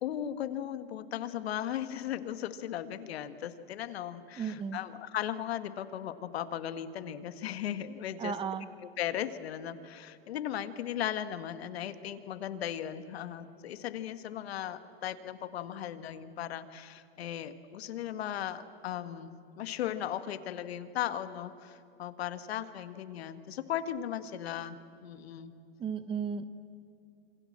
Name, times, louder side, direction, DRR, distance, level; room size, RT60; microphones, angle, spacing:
voice 1, 0.0-8.4 8.8-25.5, left 10 dB, 80° left, 11 dB, 1.8 m, -37 dB
voice 2, 4.4-4.8 8.2-8.7 25.8-26.4, right 7 dB, 15° right, 12 dB, 1.1 m, -34 dB
27.5 x 25.5 x 7.5 m, 2.7 s
supercardioid pair, 150°, 31 cm